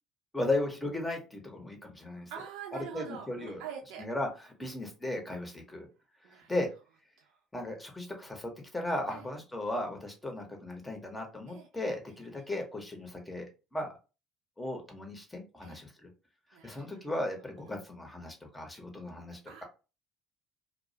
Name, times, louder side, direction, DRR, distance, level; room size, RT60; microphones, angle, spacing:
voice 1, 0.3-2.3 2.9-3.6 4.0-5.9 6.3-6.7 7.5-13.9 14.6-16.1 16.6-19.6, left 1 dB, 15° left, 3 dB, 0.8 m, -36 dB
voice 2, 2.3-4.0 6.2-6.5 9.1-9.3 11.5-11.7 15.6-15.8 16.5-17.0 17.6-17.7 19.5-19.6, right 7 dB, 65° right, 0 dB, 0.5 m, -44 dB
2.3 x 2.0 x 2.6 m, 0.31 s
figure-of-eight pair, 55°, 0 cm